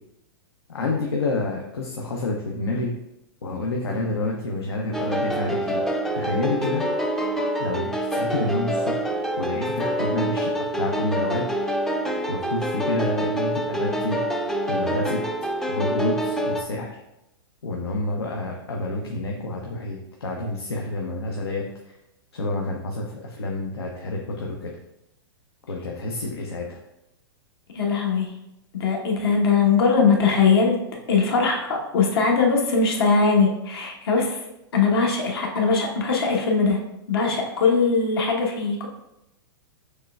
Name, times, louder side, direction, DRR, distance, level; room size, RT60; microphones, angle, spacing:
voice 1, 0.7-2.9 3.4-5.8 6.1-6.8 7.2-9.0 9.4-11.5 12.3-14.2 14.7-15.2 15.6-16.9 17.6-21.6 22.3-24.7 25.7-26.8, left 2 dB, 90° left, 0 dB, 0.6 m, -28 dB
sound 1, 4.9-16.6, right 1 dB, 5° left, 0.4 m, -26 dB
voice 2, 27.7-28.3 28.7-30.8 31.1-34.4 34.7-36.8 37.1-38.9, left 4 dB, 70° left, 0 dB, 1.1 m, -21 dB
6.4 x 3.2 x 2.3 m, 0.88 s
hypercardioid pair, 120°, 13 cm